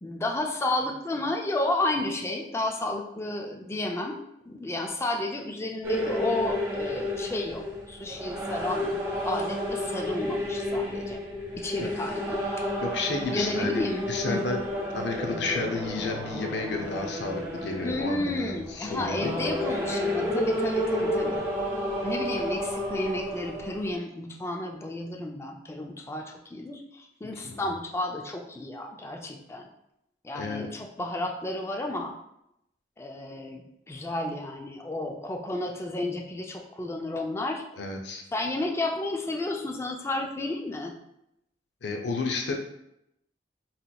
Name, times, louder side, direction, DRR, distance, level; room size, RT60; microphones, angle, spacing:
voice 1, 0.0-8.9 9.2-11.2 11.6-12.4 13.3-14.4 17.8-21.4 22.0-29.7 30.2-32.1 33.0-37.6 38.3-40.9, left 2 dB, 15° left, 2 dB, 0.3 m, -32 dB
sound 1, 5.8-23.9, left 1 dB, 20° right, 1.0 m, -31 dB
voice 2, 12.8-14.6 14.9-19.5 27.4-27.7 30.3-30.7 37.8-38.2 41.8-42.6, left 3 dB, 65° left, 3 dB, 0.5 m, -32 dB
4.1 x 2.8 x 2.2 m, 0.81 s
head